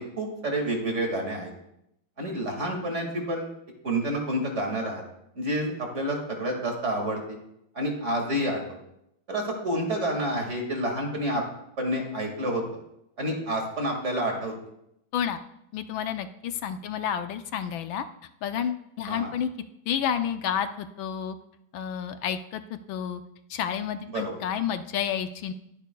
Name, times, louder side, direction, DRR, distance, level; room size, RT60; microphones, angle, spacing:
voice 1, 0.0-1.5 2.2-3.5 3.8-5.0 5.3-7.4 7.7-8.8 9.3-11.4 11.8-12.6 13.2-14.5 19.1-19.3 24.1-24.3, right 1 dB, 35° right, 2 dB, 2.2 m, -29 dB
voice 2, 15.7-18.0 18.4-19.5 19.9-21.4 21.7-23.2 23.5-25.5, left 8 dB, 75° left, 9 dB, 1.4 m, -30 dB
21.0 x 10.0 x 2.3 m, 0.80 s
omnidirectional pair, 2.2 m